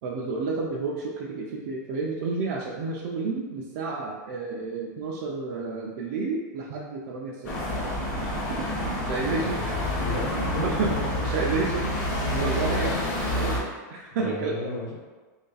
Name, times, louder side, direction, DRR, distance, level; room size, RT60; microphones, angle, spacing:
voice 1, 0.0-7.5 8.6-9.6 10.3-12.0 12.3-14.6, right 4 dB, 40° right, -3 dB, 0.3 m, -31 dB
sound 1, 7.4-13.6, left 1 dB, 30° left, 0.7 m, -28 dB
voice 2, 9.4-11.1 14.1-14.9, left 2 dB, 65° left, -2 dB, 1.0 m, -34 dB
3.0 x 2.5 x 3.9 m, 1.3 s
supercardioid pair, 175°, 10 cm